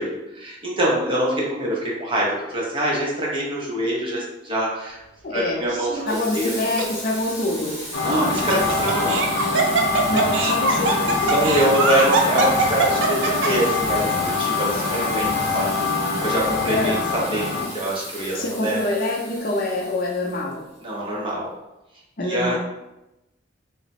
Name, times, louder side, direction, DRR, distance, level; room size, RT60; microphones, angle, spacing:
voice 1, 0.0-5.0 5.3-6.7 8.0-9.3 11.3-18.8 20.8-21.5 22.3-22.6, right 1 dB, 25° right, -4 dB, 0.8 m, -24 dB
voice 2, 5.2-5.6 6.0-7.8 10.1-11.2 16.7-17.1 18.1-20.7 22.2-22.6, left 2 dB, 45° left, -1 dB, 0.5 m, -25 dB
Laughter, 5.7-6.2 6.8-6.9 8.1-13.7, right 3 dB, 80° right, 0.5 m, -22 dB
Water tap faucet / Sink (filling or washing), 6.1-20.8, equal, ahead, 1.1 m, -35 dB
sound 1, 7.9-17.7, left 4 dB, 90° left, 0.8 m, -24 dB
2.9 x 2.1 x 4.1 m, 0.93 s
head